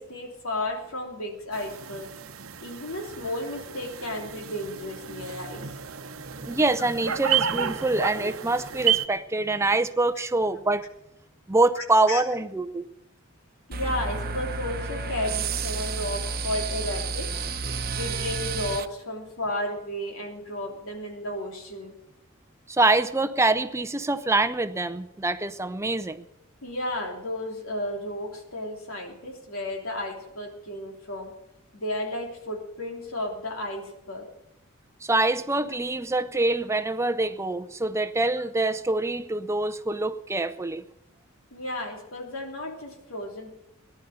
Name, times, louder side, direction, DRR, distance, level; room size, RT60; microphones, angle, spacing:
voice 1, 0.0-2.1 2.6-5.7 11.8-12.2 13.7-17.5 17.9-22.0 26.6-31.3 31.7-34.3 41.5-43.5, left 1 dB, 85° left, 1 dB, 3.2 m, -33 dB
sound 1, 1.5-9.1, right 8 dB, 80° right, 0.8 m, -31 dB
voice 2, 6.4-10.8 11.5-12.8 22.7-26.2 35.0-40.8, right 2 dB, 15° right, 11 dB, 0.6 m, -25 dB
sound 2, 13.7-18.8, right 4 dB, 45° right, 0.9 m, -31 dB
18.5 x 11.0 x 6.7 m, 0.86 s
head